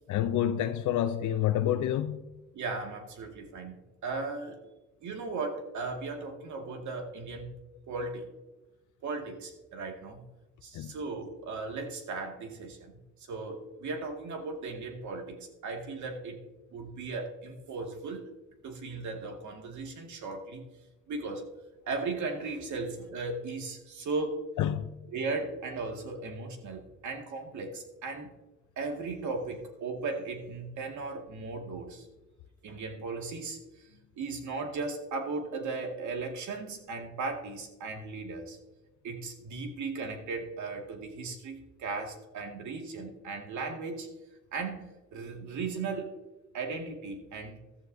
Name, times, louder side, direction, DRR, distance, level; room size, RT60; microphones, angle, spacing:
voice 1, 0.1-2.2 10.7-10.9 24.6-24.9, left 11 dB, 75° left, 0.6 m, -28 dB
voice 2, 2.5-4.6 5.0-7.5 7.9-8.3 9.0-10.2 10.6-13.0 13.3-16.4 16.7-18.3 18.6-20.7 21.1-21.5 21.9-24.5 25.1-28.3 28.8-32.1 32.6-33.8 34.2-38.6 39.0-44.1 44.5-46.2 46.5-47.6, right 3 dB, 70° right, 2.2 m, -37 dB
14.5 x 13.0 x 2.7 m
cardioid pair, 90°, 30 cm